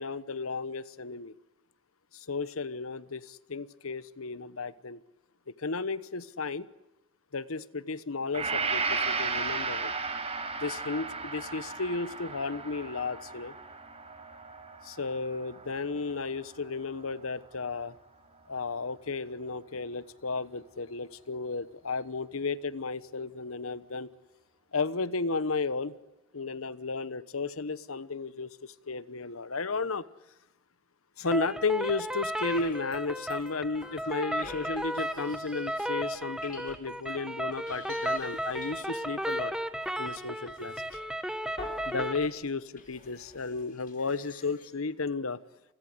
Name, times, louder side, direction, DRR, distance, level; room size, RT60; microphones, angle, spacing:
voice 1, 0.0-1.3 2.1-5.0 5.6-6.7 7.3-9.9 10.6-13.5 14.8-17.9 18.5-24.1 24.7-25.9 26.3-28.6 28.9-30.0 31.2-39.5 40.0-40.7 41.8-45.4, left 4 dB, 75° left, 16 dB, 1.1 m, -33 dB
Gong, 8.3-16.4, right 4 dB, 30° right, 5.7 m, -34 dB
sound 1, 31.3-42.3, right 1 dB, 5° right, 1.6 m, -34 dB
sound 2, 32.5-33.0 33.3-35.8 36.2-37.2 37.5-44.7, left 3 dB, 40° left, 5.8 m, -49 dB
29.0 x 21.0 x 8.0 m, 0.98 s
head